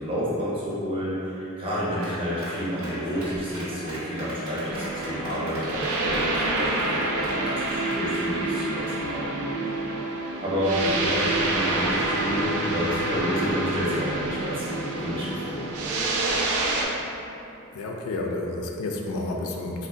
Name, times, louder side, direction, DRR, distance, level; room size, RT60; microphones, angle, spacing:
voice 1, 0.0-9.7 10.4-15.8, equal, 25° right, -8 dB, 0.7 m, -30 dB
Clapping, 1.7-8.3, right 1 dB, 70° right, 0.8 m, -38 dB
sound 1, 4.7-16.9, right 2 dB, 85° right, 0.4 m, -27 dB
voice 2, 17.7-19.9, left 2 dB, 75° left, 1 dB, 0.3 m, -30 dB
3.6 x 2.1 x 2.5 m, 2.9 s
head